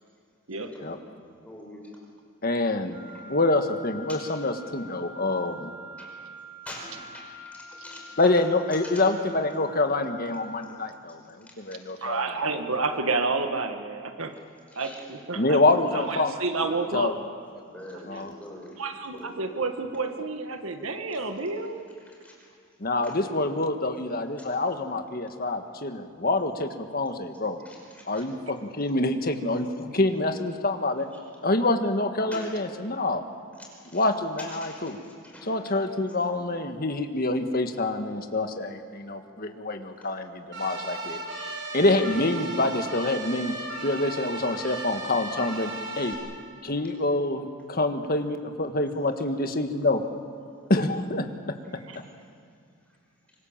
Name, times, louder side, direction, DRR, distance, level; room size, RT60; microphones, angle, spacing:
voice 1, 0.5-1.0 1.4-1.8 3.1-3.2 4.1-4.3 6.0-6.1 6.6-9.1 11.4-12.2 14.7-16.0 16.6-16.8 17.5-18.8 19.1-19.4 22.0-22.5 23.0-23.2 24.4-24.5 27.6-28.2 28.6-28.9 31.1-31.2 32.3-32.6 33.5-34.1 34.4-35.6 36.1-36.2 39.2-39.5 40.0-40.1 46.7-46.8 49.1-49.2 50.6-50.8 51.9-52.1, left 1 dB, 5° left, -2 dB, 5.1 m, -45 dB
voice 2, 2.4-3.0 3.3-5.7 8.2-12.2 15.3-16.3 16.9-17.1 18.1-18.3 22.8-27.6 28.1-31.1 31.4-33.2 33.9-35.0 35.5-41.2 41.7-43.5 43.8-46.1 46.6-50.0 50.7-51.5, left 2 dB, 45° left, 6 dB, 1.6 m, -26 dB
Wind instrument woodwind instrument, 2.9-10.7, equal, 30° right, 6.5 m, -45 dB
voice 3, 12.0-14.4 14.7-15.6 15.9-17.1 18.8-21.8 51.9-52.0, right 3 dB, 85° right, 6 dB, 1.7 m, -29 dB
sound 1, 40.5-46.1, right 1 dB, 65° right, 6.4 m, -36 dB
25.5 x 25.0 x 7.4 m, 2.3 s
head